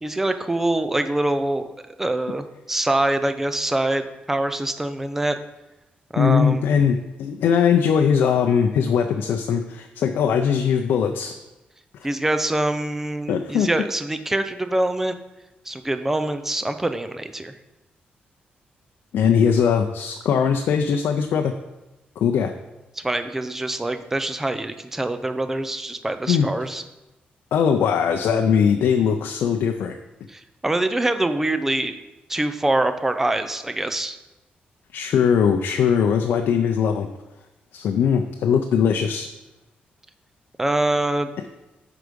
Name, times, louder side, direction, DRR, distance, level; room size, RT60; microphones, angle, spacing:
voice 1, 0.0-1.7 2.0-5.4 6.1-6.6 12.0-15.2 15.7-17.6 23.0-26.8 30.3-32.0 32.3-34.2 40.6-41.3, right 1 dB, 10° right, 9 dB, 0.5 m, -24 dB
voice 2, 6.2-11.3 13.3-13.7 19.1-21.5 22.2-22.5 26.3-26.5 27.5-30.0 34.9-37.1 37.7-39.3, left 7 dB, 90° left, 4 dB, 0.5 m, -20 dB
8.0 x 4.9 x 5.2 m, 0.99 s
wide cardioid pair, 160°, 3 cm